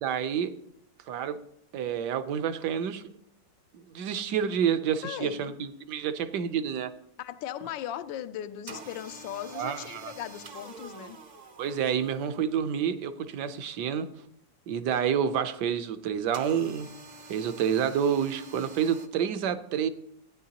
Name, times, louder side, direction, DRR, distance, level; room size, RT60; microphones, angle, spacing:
voice 1, 0.0-0.5 1.1-1.4 1.7-3.0 3.7-6.9 9.5-10.1 11.6-14.1 14.7-16.9 17.3-19.9, right 8 dB, 70° right, 1.2 m, -28 dB
voice 2, 5.0-5.5 7.2-11.2, left 11 dB, 90° left, 1.3 m, -38 dB
sound 1, 8.7-12.6 16.3-19.1, right 3 dB, 55° right, 0.4 m, -47 dB
15.0 x 9.1 x 2.9 m
omnidirectional pair, 1.9 m